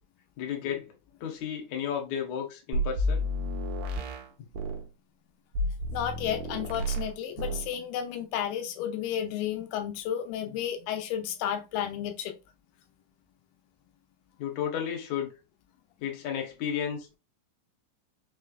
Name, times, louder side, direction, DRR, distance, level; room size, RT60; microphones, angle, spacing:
voice 1, 0.4-0.9 1.2-3.2 14.4-15.3 16.0-17.2, left 8 dB, 65° left, 2.4 m, -33 dB
sound 1, 2.7-4.9 5.6-7.1 7.4-7.7, equal, 75° right, 2.6 m, -31 dB
voice 2, 5.6-12.4, left 10 dB, 90° left, 2.5 m, -32 dB
6.1 x 3.2 x 2.3 m
omnidirectional pair, 4.0 m